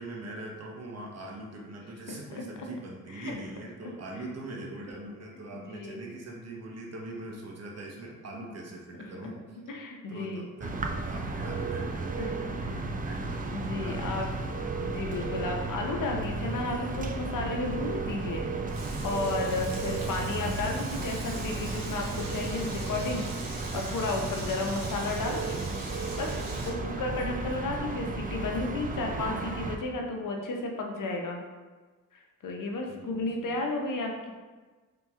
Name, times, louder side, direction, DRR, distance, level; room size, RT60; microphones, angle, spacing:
voice 1, 0.0-9.4 10.1-14.3 19.4-19.7 24.3-24.6 26.5-26.8 32.7-33.6, right 2 dB, 50° right, -1 dB, 0.9 m, -42 dB
voice 2, 5.5-6.0 9.5-10.5 12.2-12.3 13.5-14.3 14.8-18.4 19.0-23.3 23.7-25.6 26.2-26.4 26.6-31.4 32.1-34.3, left 2 dB, 65° left, 2 dB, 0.7 m, -33 dB
sound 1, 10.6-29.8, right 3 dB, 25° right, 0.4 m, -34 dB
Frying (food), 18.7-26.7, right 2 dB, 80° right, 1.0 m, -43 dB
3.5 x 2.9 x 3.5 m, 1.3 s
cardioid pair, 60°, 34 cm